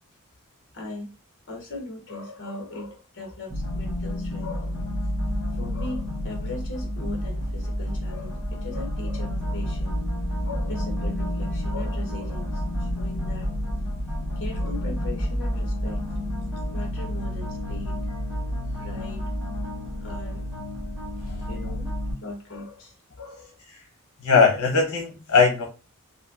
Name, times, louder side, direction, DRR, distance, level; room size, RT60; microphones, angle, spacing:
voice 1, 0.7-1.1 1.5-4.9 5.5-10.0 10.4-13.5 14.4-16.1 16.7-18.0 18.8-19.2 20.0-20.4 21.5-21.9 22.2-23.6, left 2 dB, 55° left, 1 dB, 1.1 m, -38 dB
sound 1, 3.5-22.1, equal, 5° left, 1.2 m, -30 dB
voice 2, 24.2-25.6, left 5 dB, 85° left, 0 dB, 0.8 m, -19 dB
3.1 x 2.6 x 2.4 m, 0.31 s
head